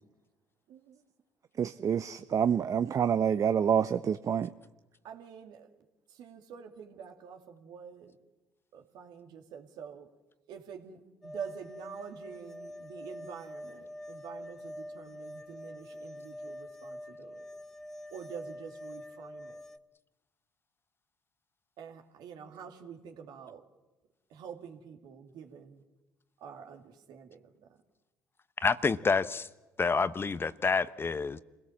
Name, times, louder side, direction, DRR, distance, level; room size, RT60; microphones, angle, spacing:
voice 1, 0.7-1.0 5.0-5.7 6.1-8.1 8.7-10.1 10.5-17.4 18.1-19.6 21.8-23.6 24.3-25.8 26.4-27.5, right 7 dB, 70° right, 2.5 m, -47 dB
voice 2, 1.6-4.5, right 8 dB, 45° right, 0.7 m, -27 dB
sound 1, 11.2-19.8, left 1 dB, 5° left, 0.9 m, -45 dB
voice 3, 28.6-29.5 29.8-31.4, left 4 dB, 30° left, 1.0 m, -28 dB
27.0 x 17.0 x 7.3 m
hypercardioid pair, 60°, 8 cm